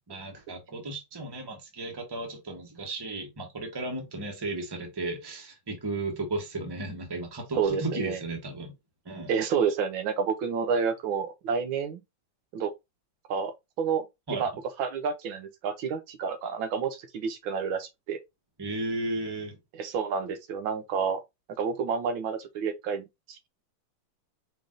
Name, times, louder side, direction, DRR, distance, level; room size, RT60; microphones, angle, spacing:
voice 1, 0.1-8.7 9.0-9.3 14.3-14.4 18.6-19.6, right 2 dB, 15° right, 0.9 m, -34 dB
voice 2, 7.6-8.2 9.3-12.0 12.5-12.7 13.3-14.0 14.3-14.5 14.8-18.2 19.7-21.2 21.6-23.5, right 6 dB, 80° right, 1.6 m, -29 dB
5.1 x 2.7 x 3.7 m
omnidirectional pair, 2.2 m